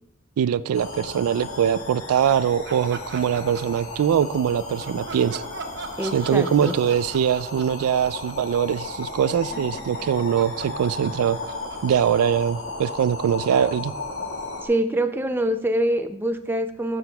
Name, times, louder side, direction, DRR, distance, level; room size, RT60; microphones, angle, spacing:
voice 1, 0.4-5.4 6.1-11.4 11.8-13.9, right 8 dB, 85° right, 0.3 m, -22 dB
sound 1, 0.7-14.7, left 3 dB, 70° left, 1.8 m, -35 dB
Laughter, 2.6-4.4 4.8-9.2 9.5-13.1, right 4 dB, 50° right, 0.7 m, -41 dB
voice 2, 6.0-6.7 14.6-17.0, right 1 dB, 10° right, 0.3 m, -25 dB
12.5 x 7.7 x 2.3 m
head